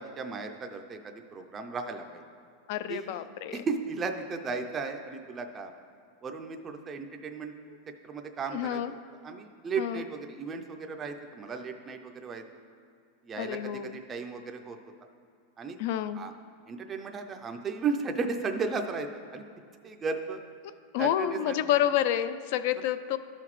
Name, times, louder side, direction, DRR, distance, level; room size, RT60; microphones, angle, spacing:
voice 1, 0.0-2.2 2.9-3.2 3.5-5.7 6.2-7.5 8.0-9.0 9.2-12.4 13.2-14.8 15.6-15.8 16.1-16.3 16.7-19.4 19.8-20.4 21.0-21.6, right 4 dB, 20° right, 4 dB, 0.4 m, -35 dB
voice 2, 2.7-3.6 7.7-7.8 8.5-8.9 9.8-10.0 13.4-14.0 15.8-16.2 20.9-23.2, left 11 dB, 55° left, 13 dB, 0.3 m, -29 dB
13.0 x 5.8 x 3.1 m, 2.3 s
supercardioid pair, 155°, 0 cm